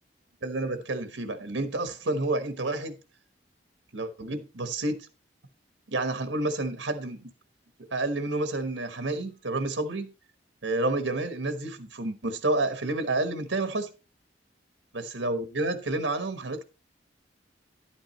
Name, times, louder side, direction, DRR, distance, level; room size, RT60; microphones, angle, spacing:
voice 1, 0.4-3.0 3.9-5.1 5.9-7.3 7.9-10.1 10.6-13.9 14.9-16.6, right 2 dB, 90° right, 1.2 m, -29 dB
11.5 x 8.8 x 3.1 m
head